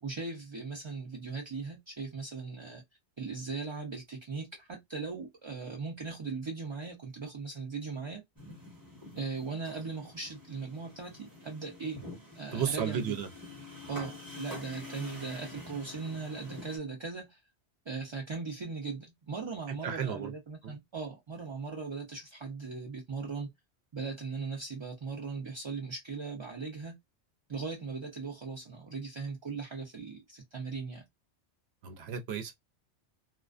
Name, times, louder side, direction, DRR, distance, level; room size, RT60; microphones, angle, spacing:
voice 1, 0.0-2.8 3.2-8.2 9.1-12.0 12.3-13.2 13.9-17.4 17.9-23.5 23.9-27.0 27.5-31.0, right 4 dB, 45° right, 0.3 m, -39 dB
sound 1, 8.4-16.8, left 1 dB, 20° right, 0.8 m, -47 dB
voice 2, 12.5-13.3 13.8-14.0 19.8-20.3 20.6-20.7 31.8-32.5, right 7 dB, 70° right, 0.8 m, -33 dB
2.4 x 2.2 x 2.3 m
omnidirectional pair, 1.2 m